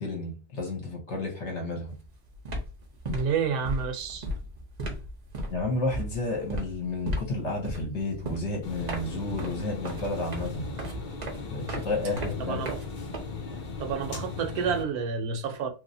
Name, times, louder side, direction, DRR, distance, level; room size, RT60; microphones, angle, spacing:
voice 1, 0.0-1.9 5.5-10.7 11.5-12.6, left 2 dB, 55° left, 1.0 m, -31 dB
sound 1, 1.8-2.1 2.3-13.7, right 1 dB, 50° right, 0.5 m, -36 dB
voice 2, 3.1-4.3 12.4-12.8 13.8-15.7, right 6 dB, 75° right, 1.1 m, -29 dB
sound 2, 8.6-14.8, left 4 dB, 75° left, 0.4 m, -37 dB
3.1 x 2.6 x 2.6 m
omnidirectional pair, 1.7 m